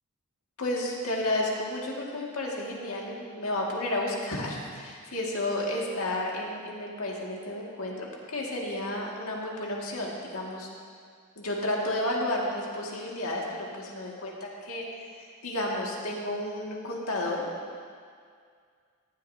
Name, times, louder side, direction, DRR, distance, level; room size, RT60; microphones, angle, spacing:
voice 1, 0.6-10.7 11.4-14.8 15.4-17.5, left 1 dB, 75° left, -3 dB, 2.0 m, -32 dB
17.5 x 11.5 x 2.8 m, 2.1 s
head